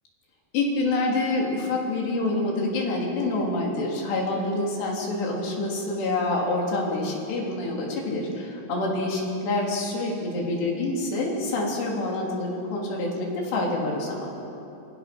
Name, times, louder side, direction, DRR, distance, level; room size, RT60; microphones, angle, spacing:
voice 1, 0.5-14.3, left 2 dB, 80° left, -2 dB, 5.9 m, -27 dB
26.5 x 24.5 x 6.2 m, 2.8 s
omnidirectional pair, 4.8 m